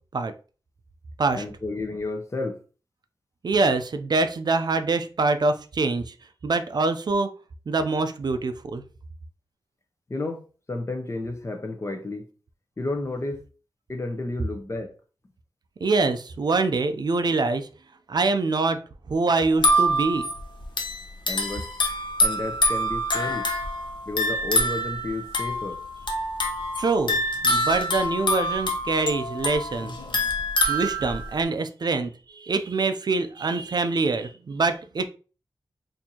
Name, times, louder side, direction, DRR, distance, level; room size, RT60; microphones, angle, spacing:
voice 1, 1.3-2.6 10.1-12.3 12.8-13.4 13.9-14.9 21.3-21.7 22.2-23.5 24.1-25.8, left 2 dB, 35° left, 0.7 m, -31 dB
voice 2, 3.4-6.1 6.4-7.3 7.7-8.8 15.8-17.7 18.1-18.8 19.1-20.3 26.8-29.9 30.7-35.0, right 3 dB, 60° right, 0.4 m, -24 dB
sound 1, 19.5-31.4, left 1 dB, 75° left, 0.8 m, -26 dB
4.3 x 2.6 x 2.8 m
wide cardioid pair, 95°, 8 cm